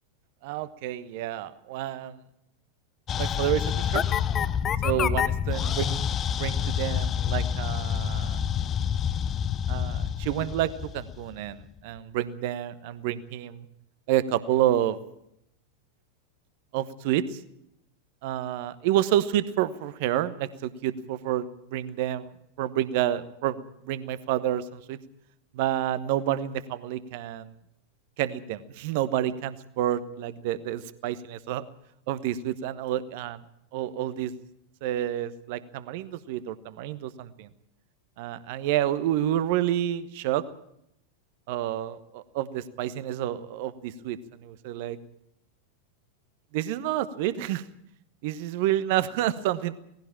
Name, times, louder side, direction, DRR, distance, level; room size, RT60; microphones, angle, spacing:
voice 1, 0.4-2.1 3.1-4.0 4.8-6.1 6.4-8.4 9.7-13.7 14.1-15.0 16.7-17.4 18.2-25.0 25.5-27.5 28.2-31.6 32.1-33.4 33.7-34.3 34.8-37.5 38.2-40.4 41.5-45.0 46.5-47.6 48.2-49.7, right 12 dB, 50° right, 15 dB, 1.1 m, -29 dB
sound 1, 3.1-11.6, left 8 dB, 25° left, 0.7 m, -27 dB
18.5 x 16.0 x 8.6 m, 0.77 s
figure-of-eight pair, 90°, 0 cm